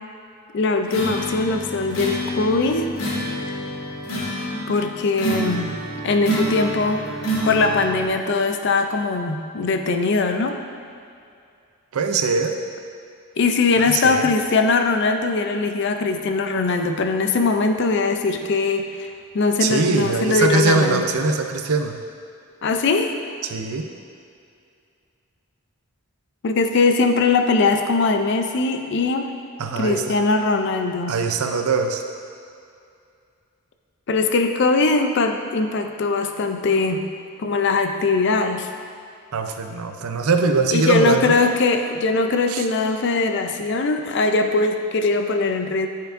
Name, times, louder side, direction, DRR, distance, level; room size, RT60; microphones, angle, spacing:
voice 1, 0.5-2.9 4.7-5.7 6.0-7.2 7.5-10.6 13.4-19.1 19.3-21.0 22.6-23.1 26.4-29.3 29.8-31.2 34.1-37.0 37.4-38.7 40.7-45.9, left 3 dB, 55° left, 6 dB, 0.4 m, -21 dB
sound 1, 0.9-8.1, right 1 dB, 90° left, 1.4 m, -28 dB
voice 2, 11.9-12.5 13.8-14.3 19.6-22.0 23.4-23.9 29.6-30.0 31.1-32.0 39.3-41.4 42.5-42.7, right 4 dB, 85° right, 5 dB, 0.5 m, -22 dB
10.0 x 4.5 x 2.5 m, 2.4 s
head